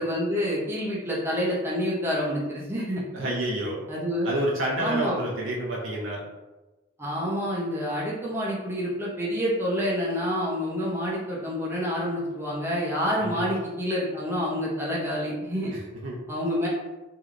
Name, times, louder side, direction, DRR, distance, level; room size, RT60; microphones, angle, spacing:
voice 1, 0.0-3.3 3.9-4.3 4.8-5.2 7.0-15.7 16.3-16.7, equal, 10° right, -6 dB, 0.6 m, -28 dB
voice 2, 3.1-3.8 4.2-6.2 13.2-13.5 15.7-16.2, right 1 dB, 85° right, -3 dB, 0.6 m, -29 dB
3.1 x 2.7 x 2.4 m, 1.1 s
head